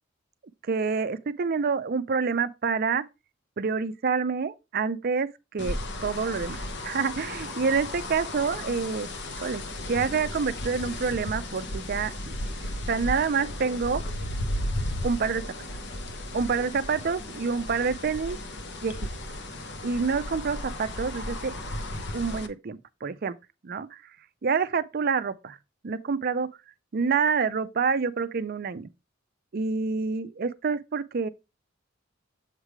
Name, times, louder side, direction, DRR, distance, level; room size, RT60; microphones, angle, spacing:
voice 1, 0.6-3.0 3.6-9.1 9.4-9.6 9.9-12.3 12.9-14.0 15.0-15.4 16.3-18.4 18.8-19.0 19.8-21.5 22.1-23.4 23.6-24.0 24.4-25.6 25.8-26.5 26.9-28.9 29.5-31.3, right 5 dB, 45° right, 0.5 m, -27 dB
sound 1, 5.6-22.5, left 1 dB, 60° left, 0.8 m, -35 dB
7.3 x 3.4 x 4.7 m
head